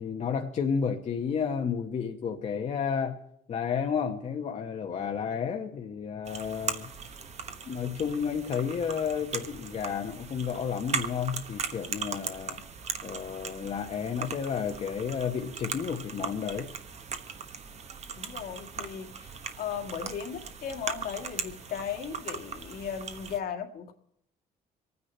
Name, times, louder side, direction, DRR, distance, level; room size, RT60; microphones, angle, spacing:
voice 1, 0.0-3.2 3.5-6.9 7.7-12.6 13.0-16.7, left 7 dB, 40° left, 1.1 m, -31 dB
sound 1, 6.2-23.4, right 6 dB, 40° right, 1.2 m, -39 dB
voice 2, 18.1-23.9, left 7 dB, 65° left, 1.9 m, -37 dB
25.0 x 9.7 x 4.4 m
cardioid pair, 110°, 17 cm